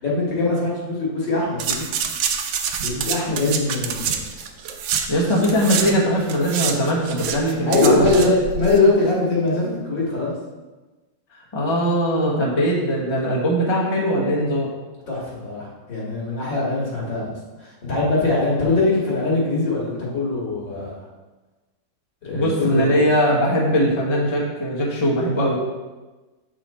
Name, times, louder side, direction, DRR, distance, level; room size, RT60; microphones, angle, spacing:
voice 1, 0.0-1.9 2.8-4.4 7.7-10.3 15.1-17.3 17.6-20.9 22.2-22.9, left 3 dB, 70° left, -5 dB, 2.8 m, -22 dB
sound 1, 1.6-5.9 6.2-8.8 9.0-9.1, right 7 dB, 80° right, 1.4 m, -27 dB
voice 2, 5.1-8.4 11.3-14.7 22.3-25.6, equal, 20° left, -3 dB, 1.0 m, -21 dB
7.6 x 5.0 x 4.3 m, 1.2 s
omnidirectional pair, 2.1 m